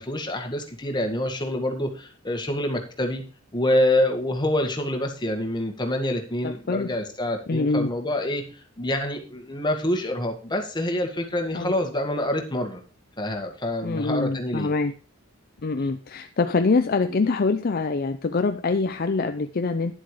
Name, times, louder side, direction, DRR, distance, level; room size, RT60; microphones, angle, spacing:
voice 1, 0.0-3.2 3.5-8.4 8.8-12.8 13.2-14.7, left 1 dB, 20° left, 4 dB, 1.9 m, -26 dB
voice 2, 6.4-6.9 7.5-7.9 11.5-11.7 13.8-14.9 15.6-19.9, left 3 dB, 45° left, 8 dB, 0.5 m, -24 dB
11.0 x 7.7 x 4.9 m, 0.37 s
head